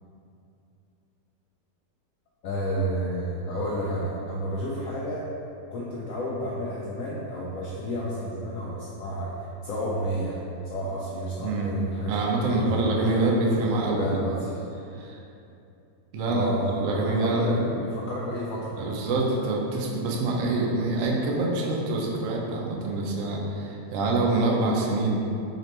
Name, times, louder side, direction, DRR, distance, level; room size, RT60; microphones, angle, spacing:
voice 1, 2.4-5.2 5.7-9.3 9.6-10.4 10.6-13.3 13.9-14.6 16.3-19.0, equal, 80° left, -5 dB, 0.7 m, -31 dB
voice 2, 11.4-11.8 12.1-14.1 15.0-15.2 16.1-17.7 18.8-25.2, right 2 dB, 65° right, -2 dB, 0.8 m, -26 dB
4.9 x 3.0 x 3.2 m, 2.7 s
omnidirectional pair, 1.9 m